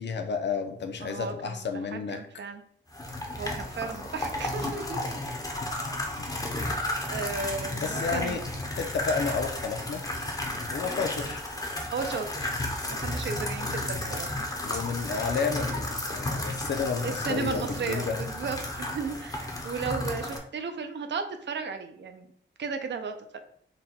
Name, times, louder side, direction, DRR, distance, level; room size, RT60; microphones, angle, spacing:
voice 1, 0.0-2.2 5.1-5.3 6.2-6.3 7.8-8.4 8.8-10.0 10.7-11.4 14.6-18.2, left 5 dB, 60° left, 6 dB, 0.6 m, -31 dB
voice 2, 1.0-2.6 3.4-5.0 6.1-6.8 7.0-8.4 11.9-12.5 12.9-14.3 17.0-22.3 22.6-23.4, right 5 dB, 65° right, 7 dB, 0.5 m, -35 dB
sound 1, 2.9-20.4, left 1 dB, 20° left, 0.6 m, -33 dB
4.1 x 2.2 x 4.2 m, 0.64 s
wide cardioid pair, 175°, 20 cm